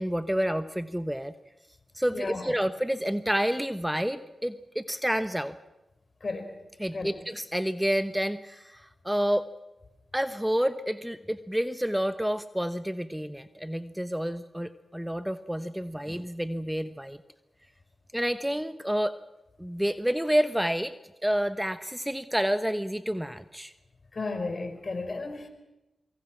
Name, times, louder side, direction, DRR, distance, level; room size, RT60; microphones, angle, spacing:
voice 1, 0.0-1.3 1.9-5.6 6.8-9.5 10.1-17.2 18.1-19.2 19.6-20.9 21.2-23.7, equal, 5° right, 12 dB, 1.0 m, -29 dB
voice 2, 6.2-6.5 6.9-7.1 24.1-25.5, left 3 dB, 50° left, 7 dB, 4.5 m, -33 dB
25.0 x 23.0 x 5.9 m, 0.96 s
cardioid pair, 40°, 0 cm